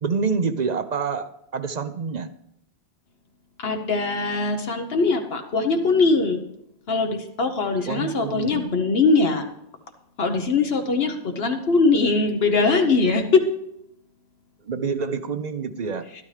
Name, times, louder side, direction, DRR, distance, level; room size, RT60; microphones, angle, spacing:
voice 1, 0.0-2.3 7.9-8.7 14.6-16.0, right 5 dB, 50° right, 11 dB, 0.6 m, -27 dB
voice 2, 3.6-6.4 6.9-9.4 10.2-13.4, left 3 dB, 75° left, 4 dB, 1.2 m, -21 dB
12.5 x 12.0 x 3.3 m, 0.79 s
omnidirectional pair, 1.0 m